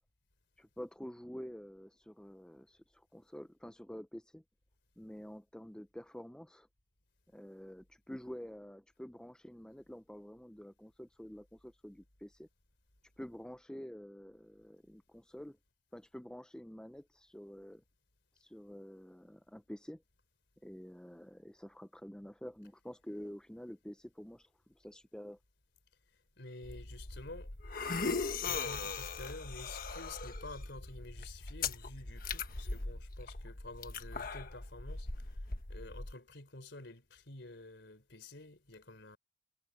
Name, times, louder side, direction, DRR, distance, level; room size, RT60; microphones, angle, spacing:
voice 1, 0.6-4.4 5.0-6.7 7.3-12.5 13.2-15.6 15.9-17.8 18.4-20.0 20.6-25.4, equal, 5° left, 0.5 m, -48 dB
voice 2, 26.4-27.5 28.4-39.2, left 2 dB, 70° left, 3.8 m, -50 dB
sound 1, 26.6-36.1, left 4 dB, 50° left, 1.4 m, -40 dB
head